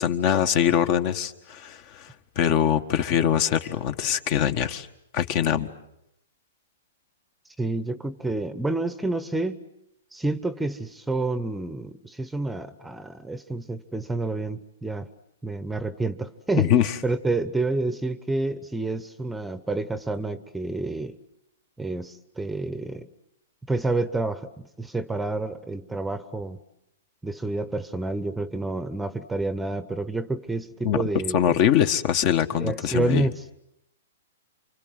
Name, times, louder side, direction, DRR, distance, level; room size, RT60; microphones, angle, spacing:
voice 1, 0.0-2.1 2.3-4.9 5.1-5.7 16.6-16.9 30.8-31.0 31.3-33.3, left 9 dB, 45° left, 9 dB, 1.6 m, -23 dB
voice 2, 7.6-9.6 10.1-15.1 15.4-16.7 17.0-21.2 21.8-23.1 23.6-24.5 24.8-26.6 27.2-31.5 32.5-33.4, right 2 dB, 5° right, 14 dB, 1.0 m, -29 dB
29.0 x 25.0 x 7.9 m, 0.80 s
hypercardioid pair, 130°, 0 cm